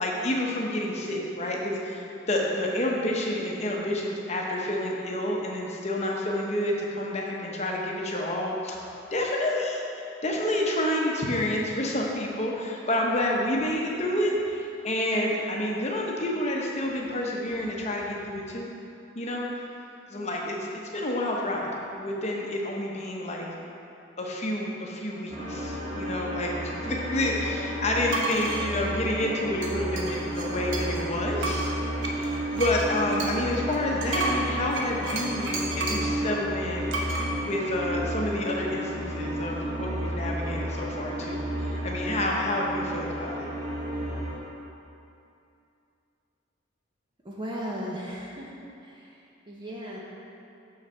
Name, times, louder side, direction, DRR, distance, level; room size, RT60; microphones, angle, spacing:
voice 1, 0.0-8.8 9.1-18.7 19.1-19.5 20.1-21.7 22.0-23.5 24.2-31.7 32.0-36.9 37.4-43.5, left 1 dB, 35° left, -2 dB, 0.9 m, -29 dB
sound 1, 25.3-44.3, right 1 dB, 40° right, 1.6 m, -32 dB
sound 2, 28.1-28.6 29.6-31.0 31.4-36.1 36.9-37.3, right 2 dB, 65° right, 1.0 m, -32 dB
voice 2, 47.2-48.5 48.8-49.1 49.5-50.0, equal, 25° right, -4 dB, 0.7 m, -36 dB
6.5 x 6.3 x 4.4 m, 2.7 s
head